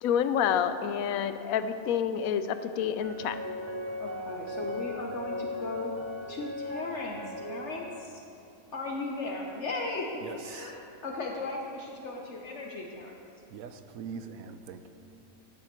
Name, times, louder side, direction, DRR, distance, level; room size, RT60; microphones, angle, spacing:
voice 1, 0.0-3.4, left 8 dB, 80° left, 11 dB, 1.0 m, -28 dB
sound 1, 3.0-8.1, left 1 dB, 20° right, 0.4 m, -38 dB
voice 2, 4.0-5.9 6.3-8.2 8.7-10.7 11.0-13.1, left 3 dB, 60° left, 0 dB, 1.1 m, -36 dB
voice 3, 10.2-10.7 13.5-14.9, right 6 dB, 80° right, 9 dB, 1.1 m, -42 dB
10.5 x 7.8 x 5.9 m, 2.8 s
omnidirectional pair, 1.5 m